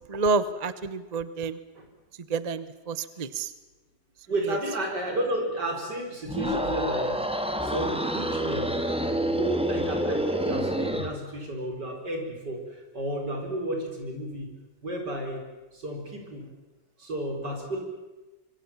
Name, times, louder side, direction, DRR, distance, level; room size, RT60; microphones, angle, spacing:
voice 1, 0.0-1.6 2.3-3.5, right 4 dB, 35° right, 14 dB, 0.6 m, -29 dB
voice 2, 4.3-7.2 7.6-8.7 9.3-14.5 14.8-15.4 15.7-16.4 17.0-17.8, right 1 dB, 60° right, 2 dB, 5.2 m, -32 dB
sound 1, 6.2-11.2, equal, 5° right, 1.5 m, -28 dB
25.5 x 23.0 x 7.3 m, 1.1 s
omnidirectional pair, 2.1 m